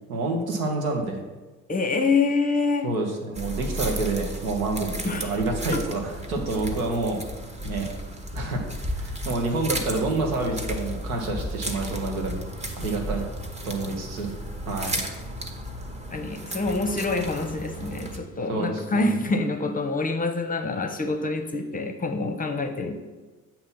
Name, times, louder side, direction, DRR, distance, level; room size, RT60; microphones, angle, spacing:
voice 1, 0.1-1.2 2.8-7.2 7.6-7.9 8.3-8.6 9.0-12.4 12.8-13.3 13.6-14.3 14.7-15.0 18.5-19.2, right 2 dB, 80° right, 2 dB, 1.0 m, -28 dB
voice 2, 1.7-2.9 5.0-5.4 5.7-5.8 16.1-23.0, left 3 dB, 20° left, 6 dB, 0.7 m, -26 dB
sound 1, 3.3-18.2, right 1 dB, 15° right, 0.8 m, -34 dB
7.6 x 2.9 x 5.6 m, 1.2 s
hypercardioid pair, 55°, 41 cm